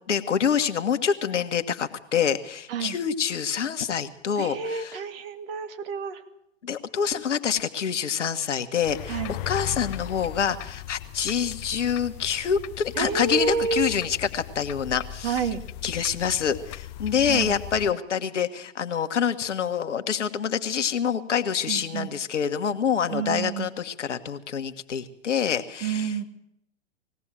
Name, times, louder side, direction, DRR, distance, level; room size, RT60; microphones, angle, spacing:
voice 1, 0.1-5.0 6.6-15.4 15.8-26.2, left 7 dB, 70° left, 8 dB, 1.6 m, -26 dB
voice 2, 4.4-6.2 9.1-9.4 13.0-14.0 15.2-15.6 17.3-17.5 21.7-22.1 23.1-23.7 25.8-26.2, right 6 dB, 50° right, 7 dB, 2.3 m, -29 dB
sound 1, 8.8-17.9, left 13 dB, 35° left, 0.7 m, -38 dB
20.5 x 17.0 x 7.6 m, 0.77 s
figure-of-eight pair, 115°, 37 cm